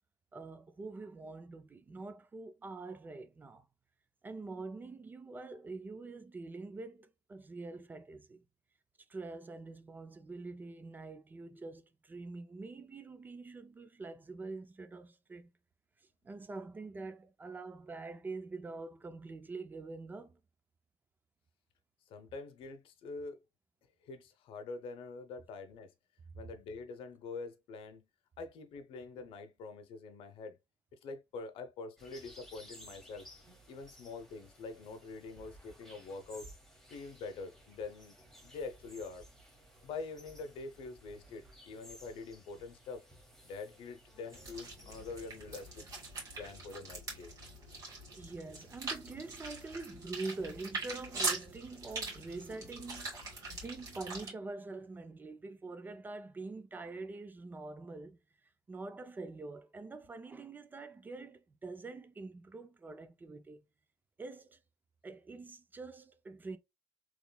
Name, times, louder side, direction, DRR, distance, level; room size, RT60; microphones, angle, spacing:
voice 1, 0.3-3.6 4.2-8.4 9.1-15.5 16.2-20.4 48.1-53.2 53.5-58.2 58.7-63.6 64.2-64.6 65.0-66.6, right 3 dB, 20° right, 0.4 m, -45 dB
voice 2, 22.1-23.4 24.0-25.9 26.3-28.1 28.4-30.6 30.9-33.3 33.7-36.5 36.9-39.3 39.8-43.0 43.4-45.8 46.4-47.3, left 4 dB, 70° left, 0.7 m, -45 dB
sound 1, 32.0-45.9, equal, 5° left, 1.3 m, -57 dB
sound 2, 44.3-54.3, right 3 dB, 35° right, 2.0 m, -42 dB
3.7 x 3.0 x 2.2 m
cardioid pair, 145°, 10 cm